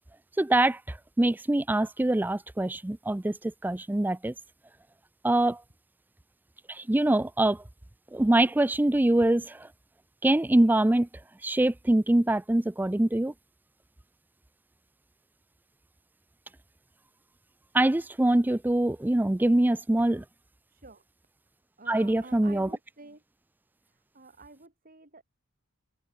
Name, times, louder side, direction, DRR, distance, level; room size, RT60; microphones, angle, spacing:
voice 1, 0.4-4.3 5.2-5.6 6.7-7.6 8.1-9.7 10.2-11.1 11.4-13.3 17.7-20.2 21.9-22.7, right 1 dB, 10° right, 0.4 m, -24 dB
voice 2, 21.8-23.2 24.1-25.2, right 3 dB, 40° right, 4.1 m, -49 dB
open air
head